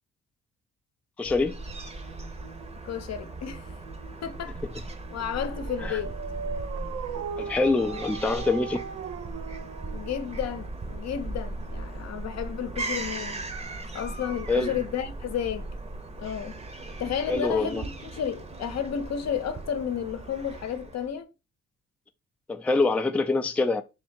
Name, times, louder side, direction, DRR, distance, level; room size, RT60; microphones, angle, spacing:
voice 1, 1.2-1.6 5.8-6.0 7.4-8.8 14.5-14.8 17.3-17.8 22.5-23.8, left 3 dB, 5° left, 0.4 m, -25 dB
Fowl / Gull seagull, 1.3-21.1, right 2 dB, 20° right, 0.8 m, -38 dB
voice 2, 2.8-3.7 4.2-4.6 5.1-6.1 9.9-13.4 13.9-15.7 16.2-16.6 17.0-21.3, left 8 dB, 60° left, 0.8 m, -32 dB
Dog, 5.3-11.0, right 7 dB, 55° right, 0.6 m, -38 dB
3.6 x 2.8 x 4.3 m
cardioid pair, 90°, 30 cm